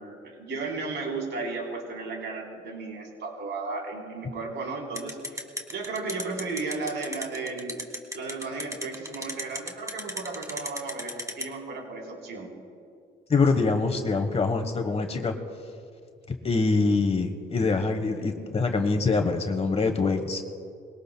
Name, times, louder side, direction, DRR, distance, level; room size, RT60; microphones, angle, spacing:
voice 1, 0.0-5.4 5.7-7.8 8.1-12.5, right 3 dB, 65° right, -1 dB, 3.7 m, -34 dB
sound 1, 4.9-11.4, equal, 15° right, 1.6 m, -33 dB
voice 2, 13.3-15.3 16.4-20.4, left 3 dB, 30° left, 5 dB, 1.2 m, -24 dB
22.5 x 18.0 x 2.2 m, 2.3 s
cardioid pair, 90°, 20 cm